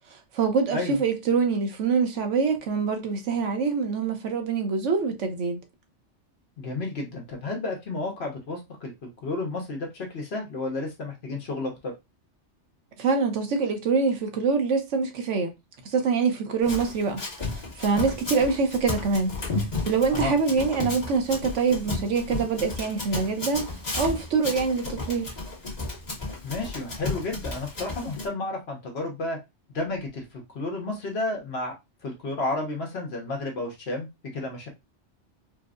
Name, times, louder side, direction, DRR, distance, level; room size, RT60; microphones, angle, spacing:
voice 1, 0.1-5.6 13.0-15.5 15.8-17.2 17.5-19.3 19.8-25.3, right 5 dB, 80° right, 1.1 m, -25 dB
voice 2, 6.6-11.9 20.1-20.3 26.4-29.4 29.7-31.7 32.0-34.7, left 2 dB, 60° left, 1.2 m, -32 dB
Run, 16.6-28.3, left 3 dB, 35° left, 1.3 m, -33 dB
4.5 x 2.0 x 2.4 m
omnidirectional pair, 1.2 m